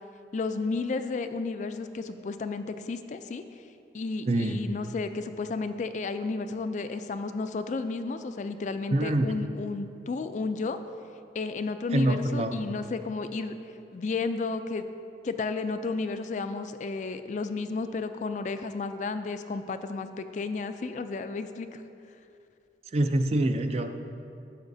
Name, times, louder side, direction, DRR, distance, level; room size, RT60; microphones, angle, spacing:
voice 1, 0.3-3.4 3.9-10.8 11.3-13.6 13.9-14.9 15.2-21.8, left 4 dB, 40° left, 9 dB, 0.3 m, -32 dB
voice 2, 4.3-4.6 8.9-9.3 11.9-12.5 22.9-24.0, right 1 dB, 35° right, 7 dB, 0.4 m, -25 dB
13.0 x 7.4 x 2.7 m, 2.6 s
head